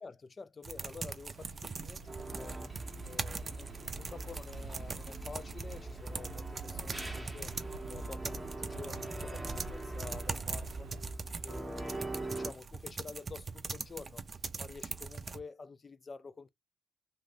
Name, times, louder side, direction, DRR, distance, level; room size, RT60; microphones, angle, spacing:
voice 1, 0.0-2.6 3.0-7.5 7.9-11.0 11.4-14.2 14.6-16.5, left 4 dB, 35° left, 0.3 m, -49 dB
sound 1, 0.6-15.4, right 4 dB, 35° right, 0.5 m, -42 dB
sound 2, 1.4-11.1, right 5 dB, 85° right, 0.6 m, -50 dB
sound 3, 2.1-12.5, right 2 dB, 10° right, 0.8 m, -42 dB
2.6 x 2.6 x 3.2 m
cardioid pair, 90°, 0 cm